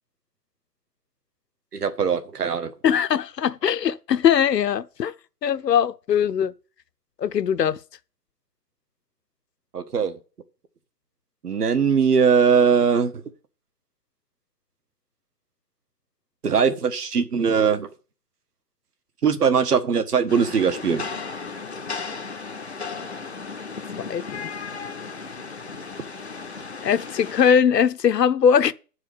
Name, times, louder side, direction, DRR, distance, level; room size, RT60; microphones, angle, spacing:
voice 1, 1.7-2.7 9.7-10.2 11.4-13.2 16.4-17.9 19.2-21.1, right 6 dB, 65° right, 1.4 m, -20 dB
voice 2, 2.8-5.1 5.4-6.5 7.2-7.8 24.1-24.5 26.8-28.7, left 8 dB, 75° left, 0.8 m, -20 dB
Rain, 20.3-27.5, left 4 dB, 45° left, 0.6 m, -35 dB
9.5 x 4.9 x 7.6 m
hypercardioid pair, 180°, 50 cm